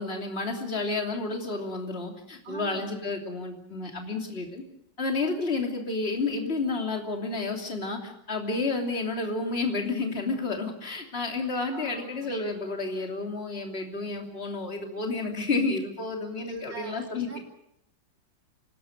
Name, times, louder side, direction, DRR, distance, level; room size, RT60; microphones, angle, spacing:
voice 1, 0.0-4.6 5.0-17.4, left 3 dB, 30° left, 2 dB, 3.2 m, -31 dB
voice 2, 2.4-2.9 11.7-12.4 16.5-17.4, right 2 dB, 60° right, 2 dB, 4.0 m, -42 dB
26.5 x 19.0 x 6.6 m, 0.75 s
omnidirectional pair, 2.2 m